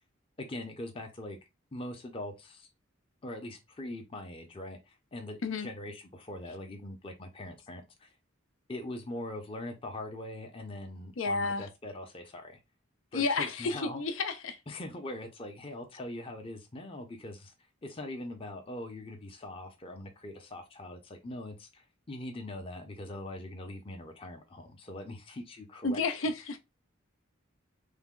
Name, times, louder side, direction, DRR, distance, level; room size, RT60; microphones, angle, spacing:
voice 1, 0.4-1.4 1.7-2.7 3.2-4.8 5.1-8.1 8.7-12.6 13.1-14.0 14.7-17.5 17.8-26.0, left 1 dB, 30° left, 0.6 m, -42 dB
voice 2, 11.2-11.7 13.1-14.6 25.8-26.6, left 3 dB, 75° left, 0.6 m, -31 dB
3.4 x 2.1 x 3.7 m
head